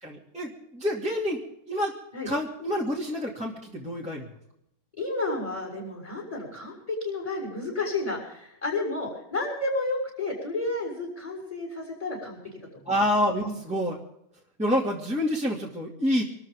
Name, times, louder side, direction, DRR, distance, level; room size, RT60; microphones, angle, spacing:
voice 1, 0.0-1.4 1.7-1.9 2.2-4.3 12.9-14.0 14.6-16.2, left 1 dB, 5° right, -4 dB, 2.3 m, -27 dB
voice 2, 5.0-12.4 13.4-13.5, left 2 dB, 20° left, -2 dB, 6.6 m, -31 dB
26.0 x 13.5 x 3.7 m, 0.77 s
omnidirectional pair, 1.8 m